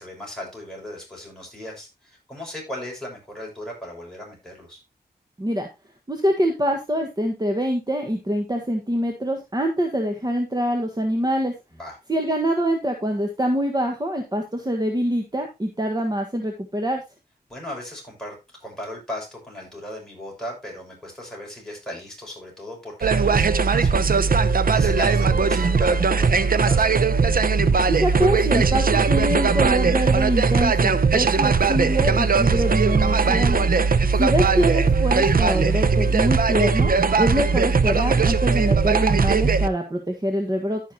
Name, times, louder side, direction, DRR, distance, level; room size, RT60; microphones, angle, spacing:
voice 1, 0.0-4.8 11.7-12.0 17.5-24.1 24.4-26.9 33.9-34.0, left 1 dB, 5° left, -3 dB, 6.6 m, -37 dB
voice 2, 6.1-11.5 12.1-17.0 27.9-33.6 34.2-40.8, equal, 25° right, 4 dB, 1.5 m, -24 dB
sound 1, 23.0-39.7, right 5 dB, 60° right, 0.8 m, -19 dB
14.5 x 5.9 x 2.8 m, 0.24 s
wide cardioid pair, 80°, 17 cm